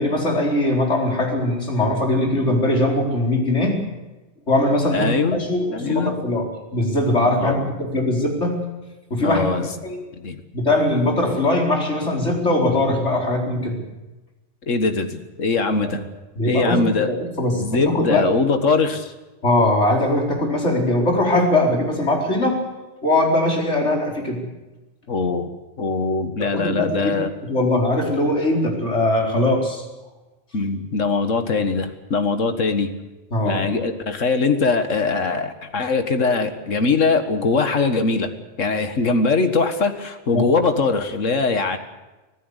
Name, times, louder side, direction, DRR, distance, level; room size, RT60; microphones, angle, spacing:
voice 1, 0.0-3.7 4.5-8.6 9.1-10.0 10.5-13.8 15.7-16.0 16.4-18.2 19.4-22.6 23.0-24.5 26.5-27.2 27.4-29.8 33.3-33.6 40.3-40.4, left 1 dB, 65° left, 0 dB, 4.9 m, -21 dB
voice 2, 4.9-5.4 5.7-6.1 7.4-7.7 9.2-9.7 10.2-10.4 14.7-16.0 16.5-17.1 17.6-19.1 25.1-25.5 25.8-27.3 30.5-32.9 33.4-38.3 38.6-41.8, left 4 dB, 80° left, 8 dB, 2.1 m, -21 dB
25.0 x 16.0 x 8.2 m, 1.1 s
omnidirectional pair, 1.3 m